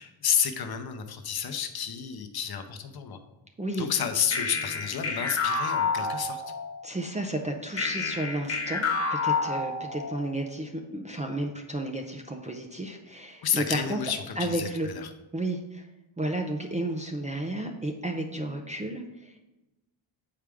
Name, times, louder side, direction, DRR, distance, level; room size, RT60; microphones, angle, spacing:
voice 1, 0.0-3.2 3.8-6.4 13.4-15.1, left 8 dB, 50° left, 6 dB, 0.7 m, -30 dB
voice 2, 3.6-3.9 6.8-14.0 14.4-14.9 15.3-15.9 16.2-19.4, right 1 dB, 15° right, 2 dB, 0.5 m, -32 dB
sound 1, 4.3-6.8 7.8-10.3, left 4 dB, 30° left, 1.1 m, -29 dB
7.2 x 4.9 x 3.4 m, 1.0 s
wide cardioid pair, 130°, 48 cm